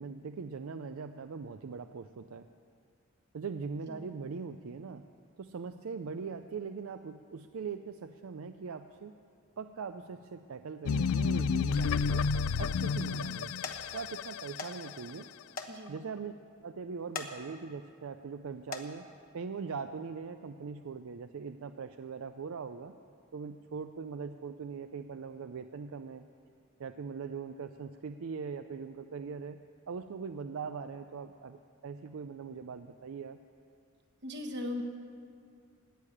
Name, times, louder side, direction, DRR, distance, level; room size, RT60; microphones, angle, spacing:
voice 1, 0.0-2.5 3.3-5.0 5.4-9.1 9.6-12.3 12.6-13.5 13.9-15.3 15.9-16.3 16.6-19.1 19.3-22.9 23.3-26.3 26.8-29.6 29.9-33.4, right 5 dB, 75° right, 9 dB, 0.4 m, -41 dB
sound 1, 10.9-15.2, left 5 dB, 85° left, 0.3 m, -31 dB
sound 2, 13.6-13.8 14.6-14.7 15.0-15.1 15.5-15.7 16.1-16.2 17.0-17.3 17.8-18.1 18.6-18.9 19.8-20.0 20.5-20.6, left 4 dB, 40° left, 1.0 m, -40 dB
voice 2, 15.7-16.0 34.2-34.8, left 1 dB, 55° right, 3 dB, 1.5 m, -38 dB
17.0 x 6.6 x 9.9 m, 2.3 s
head